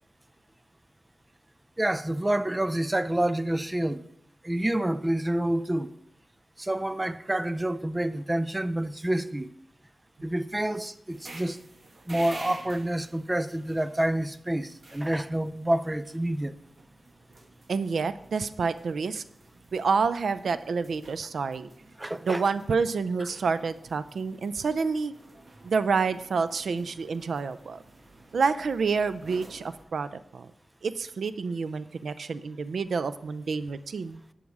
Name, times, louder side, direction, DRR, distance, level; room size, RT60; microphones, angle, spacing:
voice 1, 1.8-4.1 4.4-5.9 6.6-9.5 10.2-11.6 12.1-16.6 22.0-22.4, right 1 dB, 15° right, 0.4 m, -28 dB
sound 1, 11.1-29.8, right 2 dB, 45° right, 1.7 m, -51 dB
voice 2, 17.7-19.2 19.7-21.7 22.3-25.1 25.6-27.8 28.3-30.5 30.8-34.2, right 5 dB, 85° right, 0.5 m, -28 dB
11.0 x 8.4 x 4.8 m
wide cardioid pair, 110°, 0 cm